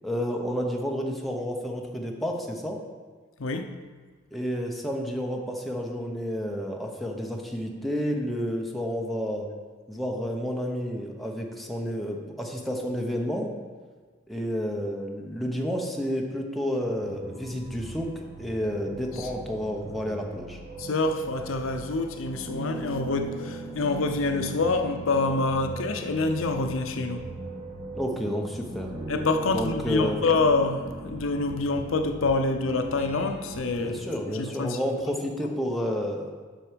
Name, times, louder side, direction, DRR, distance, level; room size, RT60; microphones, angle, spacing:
voice 1, 0.0-2.8 4.3-9.5 9.9-13.5 14.3-18.1 18.4-20.6 27.9-28.9 29.5-30.2 33.8-36.3, equal, ahead, 0.8 m, -30 dB
voice 2, 3.4-3.7 19.1-19.3 20.8-27.2 29.1-34.0 34.3-34.8, left 3 dB, 70° left, 0.6 m, -26 dB
sound 1, 16.9-34.0, right 2 dB, 85° right, 2.6 m, -39 dB
7.5 x 6.0 x 5.1 m
head